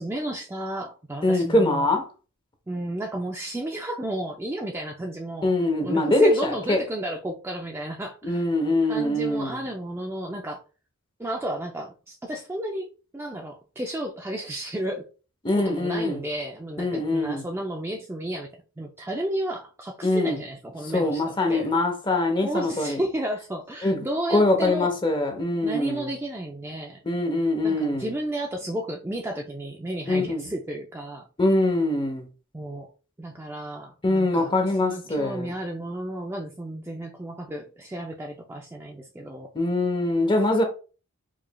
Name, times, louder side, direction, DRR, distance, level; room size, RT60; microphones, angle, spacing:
voice 1, 0.0-1.9 2.7-8.4 8.9-10.6 11.2-12.9 13.1-15.0 15.5-18.5 18.8-21.7 22.4-24.9 25.6-27.0 27.6-31.3 32.5-32.9 33.2-39.5, right 1 dB, 10° right, 0.3 m, -32 dB
voice 2, 1.2-2.0 5.4-6.8 8.2-9.6 15.4-16.2 16.8-17.4 20.0-20.4 20.9-23.0 23.8-24.0 24.3-26.1 27.0-28.1 30.1-30.4 31.4-32.3 34.0-35.5 39.5-40.6, left 2 dB, 20° left, 0.7 m, -23 dB
4.7 x 3.1 x 2.2 m
head